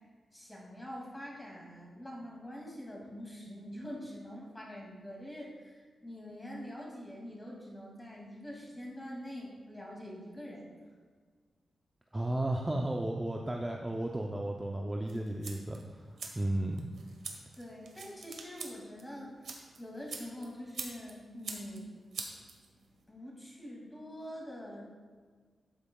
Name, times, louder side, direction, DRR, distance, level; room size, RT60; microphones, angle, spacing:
voice 1, 0.3-10.6 17.5-19.5 19.8-21.9 23.1-24.8, equal, 10° left, -3 dB, 2.3 m, -45 dB
voice 2, 12.1-15.8 16.3-16.9, right 1 dB, 15° right, 1 dB, 0.5 m, -33 dB
sound 1, 15.1-23.0, right 4 dB, 75° right, 1.2 m, -46 dB
12.5 x 8.6 x 2.3 m, 1.6 s
wide cardioid pair, 135°, 0 cm